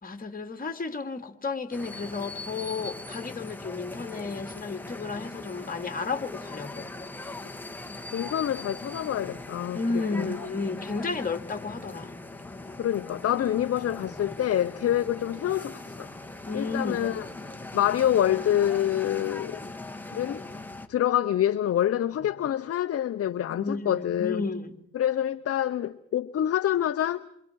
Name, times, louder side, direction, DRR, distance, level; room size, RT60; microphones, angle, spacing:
voice 1, 0.0-6.9 9.7-12.2 16.5-17.0 23.5-24.7, left 4 dB, 30° left, 2.6 m, -32 dB
sound 1, 1.7-20.9, left 2 dB, 5° left, 1.8 m, -40 dB
voice 2, 8.1-10.3 12.8-16.1 16.5-17.2 17.7-19.6 20.1-20.4 20.9-24.4 24.9-27.2, left 11 dB, 50° left, 0.8 m, -26 dB
28.5 x 25.0 x 4.7 m
cardioid pair, 90°, 30 cm